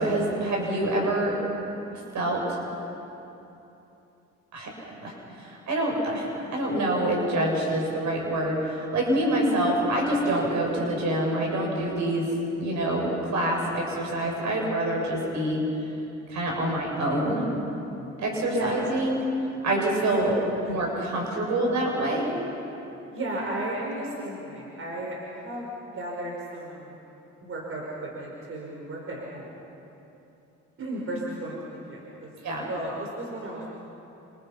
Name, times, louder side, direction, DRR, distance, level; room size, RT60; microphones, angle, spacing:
voice 1, 0.0-1.4 1.9-2.6 4.5-4.7 5.0-5.1 5.4-8.6 8.9-12.3 12.6-15.6 16.3-17.5 18.2-19.2 19.6-20.3 20.6-22.3 32.4-32.7, right 1 dB, 70° right, -1 dB, 7.5 m, -26 dB
voice 2, 18.5-18.9 20.1-20.8 23.1-27.0 27.4-29.6 30.8-32.3 32.7-33.7, right 1 dB, 45° right, -3 dB, 5.4 m, -34 dB
29.5 x 27.5 x 5.9 m, 2.9 s
cardioid pair, 90°, 30 cm